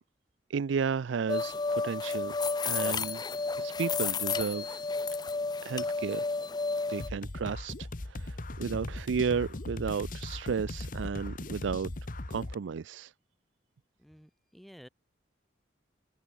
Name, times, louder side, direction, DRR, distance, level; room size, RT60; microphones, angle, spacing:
voice 1, 0.5-2.4 2.6-3.2 3.6-4.8 5.6-6.3 6.9-11.9 12.3-13.1, right 6 dB, 90° right, 0.4 m, -33 dB
sound 1, 1.3-7.1, left 4 dB, 20° left, 0.4 m, -32 dB
sound 2, 7.0-12.6, left 2 dB, 45° left, 1.2 m, -39 dB
voice 2, 14.0-14.9, equal, ahead, 3.4 m, -53 dB
open air
head